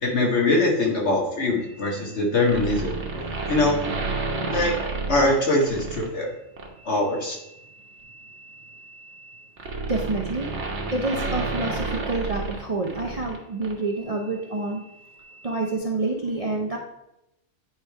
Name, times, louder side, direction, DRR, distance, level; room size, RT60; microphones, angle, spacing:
voice 1, 0.0-3.8 4.5-4.7 5.1-6.3 6.9-7.4, left 2 dB, 55° left, -1 dB, 1.8 m, -23 dB
sound 1, 2.4-6.1 6.6-6.8 8.0-13.4 13.6-13.7, right 3 dB, 60° right, 1.3 m, -30 dB
voice 2, 9.9-10.6 10.9-14.8 15.4-16.8, right 2 dB, 35° right, -1 dB, 0.6 m, -28 dB
9.1 x 3.3 x 4.5 m, 0.87 s
omnidirectional pair, 1.4 m